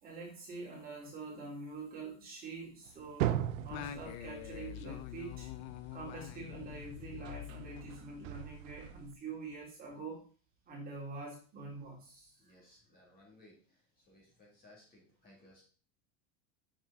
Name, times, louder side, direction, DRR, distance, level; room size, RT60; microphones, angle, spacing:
voice 1, 0.0-3.4 3.6-5.5 5.9-10.2 10.7-12.5, right 3 dB, 25° right, -3 dB, 3.0 m, -45 dB
sound 1, 2.9-6.1 7.3-9.1, right 12 dB, 80° right, 0.8 m, -38 dB
Singing, 3.7-8.4, left 11 dB, 40° left, 0.7 m, -46 dB
voice 2, 12.4-15.6, left 1 dB, 25° left, -2 dB, 2.7 m, -61 dB
7.2 x 6.5 x 4.1 m, 0.40 s
supercardioid pair, 155°, 39 cm